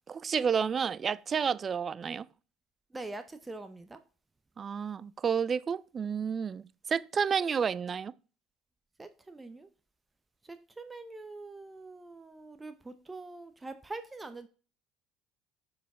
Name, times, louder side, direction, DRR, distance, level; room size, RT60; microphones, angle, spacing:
voice 1, 0.1-2.3 4.6-6.6 6.9-8.1, right 6 dB, 35° right, 0.3 m, -30 dB
voice 2, 2.9-4.0 9.0-9.7 10.4-14.5, right 2 dB, 15° right, 0.7 m, -44 dB
7.0 x 4.7 x 3.6 m
supercardioid pair, 85°, 0 cm